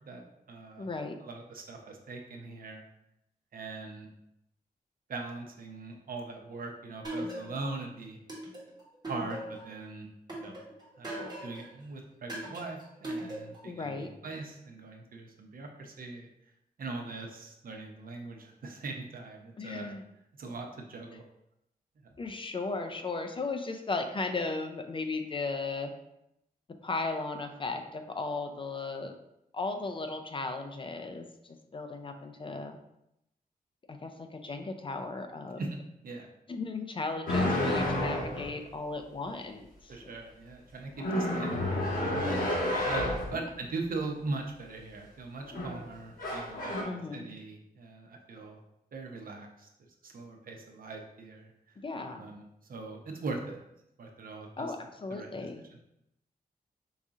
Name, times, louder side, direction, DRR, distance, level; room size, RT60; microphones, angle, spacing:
voice 1, 0.0-0.9 1.2-2.8 3.5-4.1 5.1-8.2 9.1-10.6 11.0-16.3 16.8-19.9 20.4-21.2 22.0-22.1 35.6-35.7 36.0-36.3 39.9-41.7 42.0-42.4 42.8-48.6 48.9-49.7 50.0-51.8 52.2-52.4 52.7-53.6 54.0-54.7 55.1-55.3, right 3 dB, 65° right, 3 dB, 0.7 m, -41 dB
voice 2, 0.8-1.2 13.6-14.1 19.6-20.0 22.2-25.9 26.8-29.1 29.5-32.8 33.9-35.6 36.5-40.1 43.3-43.5 46.8-47.2 51.8-52.2 54.6-55.6, left 3 dB, 35° left, 5 dB, 0.4 m, -36 dB
sound 1, 7.0-7.8 8.3-9.7 10.3-11.7 12.3-13.7, right 1 dB, 25° right, 1.3 m, -39 dB
sound 2, 37.3-38.5 41.0-43.3 45.4-45.8 46.2-46.8, left 1 dB, 60° left, 1.6 m, -30 dB
4.7 x 2.7 x 3.6 m, 0.82 s
wide cardioid pair, 170°, 16 cm